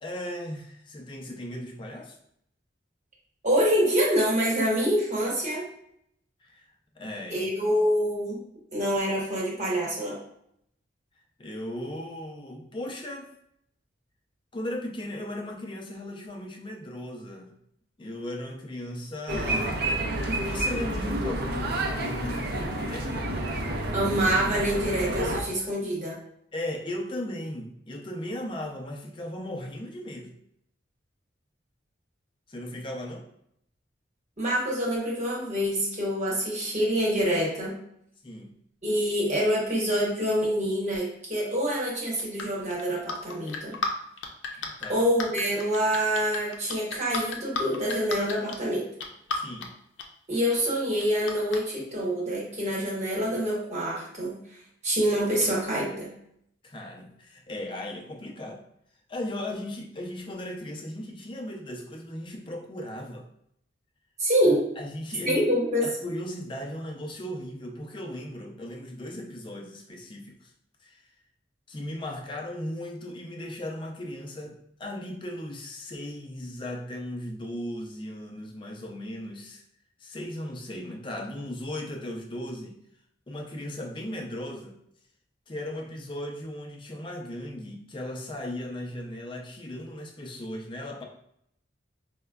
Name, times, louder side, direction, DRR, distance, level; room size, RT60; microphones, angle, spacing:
voice 1, 0.0-2.2 6.4-6.7 6.9-7.5 11.4-13.3 14.5-17.6 18.0-19.8 20.1-23.3 26.5-30.3 32.5-33.3 38.2-38.5 44.8-45.0 49.3-49.7 56.6-58.6 59.1-63.2 64.8-65.5 65.8-70.5 70.8-71.0 71.7-79.6 80.0-82.7 83.3-84.8 85.5-91.0, left 1 dB, 25° left, 1 dB, 0.5 m, -37 dB
voice 2, 3.4-5.6 7.3-8.4 8.7-10.2 23.9-26.2 34.4-37.8 38.8-43.8 44.9-48.8 50.3-54.4 54.8-56.1 64.2-64.6 65.2-65.8, equal, 40° right, -4 dB, 1.1 m, -26 dB
sound 1, 19.3-25.4, right 1 dB, 55° right, 0.5 m, -29 dB
sound 2, 41.8-43.9 44.2-48.6 49.0-49.7 50.0-50.1 50.5-50.6 51.0-51.6, left 5 dB, 90° left, 0.5 m, -33 dB
4.8 x 2.1 x 2.2 m, 0.72 s
head